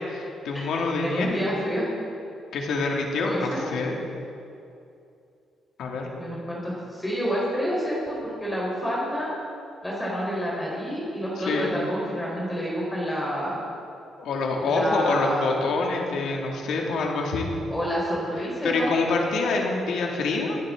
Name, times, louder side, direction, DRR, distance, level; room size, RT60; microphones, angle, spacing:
voice 1, 0.1-1.4 2.5-4.0 5.8-6.1 11.4-11.7 14.2-17.5 18.6-20.6, left 3 dB, 75° left, 0 dB, 2.5 m, -26 dB
voice 2, 1.0-1.9 3.2-3.6 6.2-9.3 9.8-13.6 14.6-15.5 17.7-19.0, equal, 10° left, -5 dB, 4.2 m, -28 dB
22.5 x 11.0 x 3.9 m, 2.6 s
cardioid pair, 90°, 0 cm